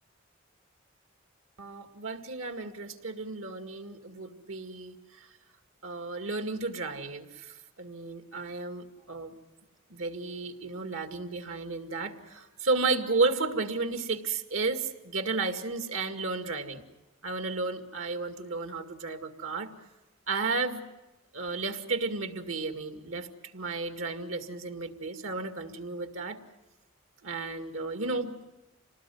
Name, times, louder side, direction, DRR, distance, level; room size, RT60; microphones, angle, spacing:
voice 1, 1.6-5.3 5.8-9.3 9.9-16.8 17.2-19.7 20.3-20.8 21.3-23.3 23.5-26.4 27.2-28.4, right 3 dB, 80° right, 6 dB, 2.1 m, -33 dB
26.5 x 19.5 x 9.3 m, 1.1 s
head